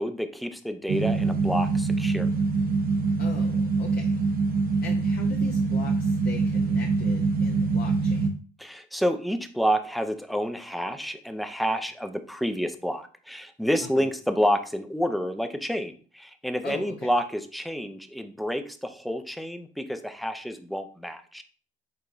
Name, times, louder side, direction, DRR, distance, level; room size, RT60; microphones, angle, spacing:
voice 1, 0.0-2.3 8.6-21.4, equal, ahead, 8 dB, 0.5 m, -29 dB
sound 1, 0.9-8.3, right 4 dB, 50° right, 0.8 m, -24 dB
voice 2, 3.2-4.2 4.8-8.3 13.8-14.1 16.6-17.1, left 5 dB, 55° left, 1 dB, 0.7 m, -40 dB
4.8 x 4.2 x 2.6 m, 0.41 s
cardioid pair, 90°, 20 cm